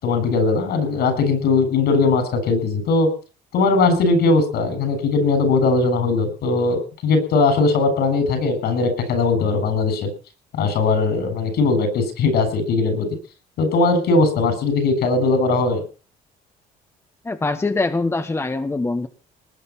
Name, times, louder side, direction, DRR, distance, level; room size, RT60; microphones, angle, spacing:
voice 1, 0.0-3.1 3.5-10.1 10.6-13.1 13.6-15.8, left 3 dB, 70° left, 10 dB, 7.6 m, -19 dB
voice 2, 17.2-19.1, left 3 dB, 15° left, 9 dB, 1.4 m, -23 dB
19.5 x 9.4 x 5.9 m, 0.37 s
cardioid pair, 110°, 17 cm